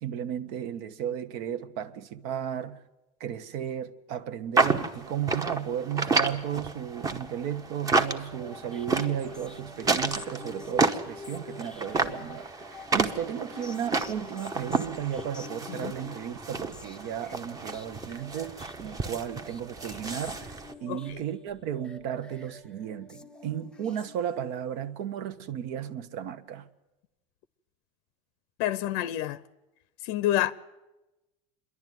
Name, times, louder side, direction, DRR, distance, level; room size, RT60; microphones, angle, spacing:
voice 1, 0.0-2.8 3.2-12.7 12.9-26.7, right 9 dB, 65° right, 1.1 m, -34 dB
sound 1, 4.6-20.7, right 3 dB, 20° right, 1.0 m, -31 dB
sound 2, 8.2-24.6, left 3 dB, 5° left, 0.6 m, -47 dB
voice 2, 20.9-21.2 28.6-29.4 30.0-30.5, left 13 dB, 65° left, 0.6 m, -28 dB
27.0 x 11.0 x 9.3 m
cardioid pair, 145°, 18 cm